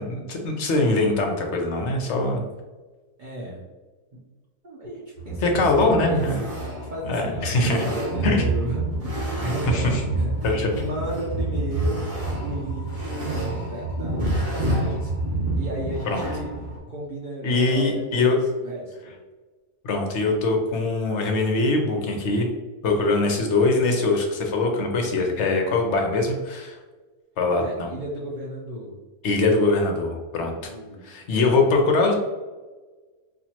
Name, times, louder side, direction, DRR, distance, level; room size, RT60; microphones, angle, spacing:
voice 1, 0.0-2.4 5.4-6.4 7.1-7.9 8.2-8.4 9.7-10.0 10.4-10.7 16.1-16.2 17.4-18.4 19.8-22.5 22.8-26.8 27.4-27.9 29.2-30.5 31.0-32.1, left 2 dB, 60° left, 2 dB, 0.8 m, -22 dB
voice 2, 3.2-3.6 4.6-6.3 6.6-15.1 15.5-16.5 16.9-19.1 27.6-29.0 30.6-31.0, right 1 dB, 65° right, -5 dB, 0.4 m, -34 dB
sound 1, 5.2-16.8, right 2 dB, 30° right, 1.3 m, -28 dB
4.4 x 2.5 x 2.8 m, 1.3 s
omnidirectional pair, 1.7 m